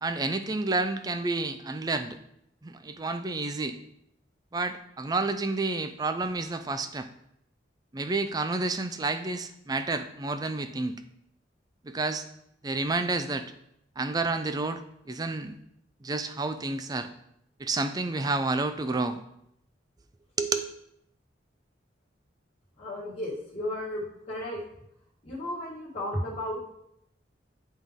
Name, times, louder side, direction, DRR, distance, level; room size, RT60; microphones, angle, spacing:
voice 1, 0.0-2.2 2.6-3.8 4.5-7.1 7.9-11.0 11.8-12.3 12.6-13.5 14.0-15.5 16.0-17.1 17.6-19.2 20.4-20.7, right 3 dB, 20° right, 9 dB, 0.4 m, -30 dB
voice 2, 22.8-24.6 25.2-26.6, left 1 dB, 35° left, -9 dB, 1.8 m, -34 dB
10.0 x 3.6 x 3.6 m, 0.77 s
head